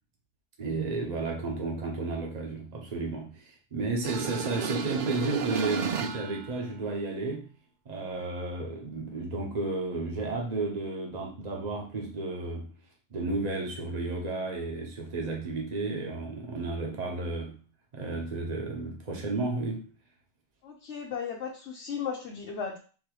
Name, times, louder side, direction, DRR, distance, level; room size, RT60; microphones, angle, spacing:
voice 1, 0.6-7.5 7.8-12.7 13.1-17.6 17.9-19.9, right 3 dB, 40° right, 1.1 m, -32 dB
sound 1, 4.0-6.5, right 7 dB, 55° right, 0.5 m, -32 dB
voice 2, 20.6-22.8, left 6 dB, 75° left, 1.0 m, -35 dB
3.8 x 3.0 x 4.7 m
omnidirectional pair, 1.2 m